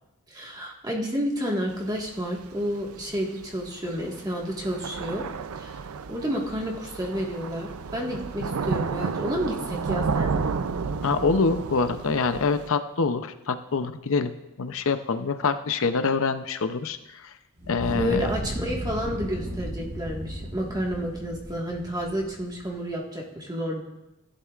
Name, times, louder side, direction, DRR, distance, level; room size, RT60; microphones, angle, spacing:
voice 1, 0.3-5.2 5.6-5.8 6.1-10.5 18.0-23.8, equal, 20° right, -1 dB, 1.6 m, -30 dB
Thunder / Rain, 1.7-12.7, right 5 dB, 75° right, 0.5 m, -32 dB
voice 2, 11.0-14.3 14.6-17.3 17.7-18.3, left 4 dB, 65° left, 10 dB, 0.6 m, -25 dB
Fire, 17.6-22.8, right 1 dB, 55° right, 4.2 m, -35 dB
15.5 x 11.5 x 2.4 m, 0.97 s
head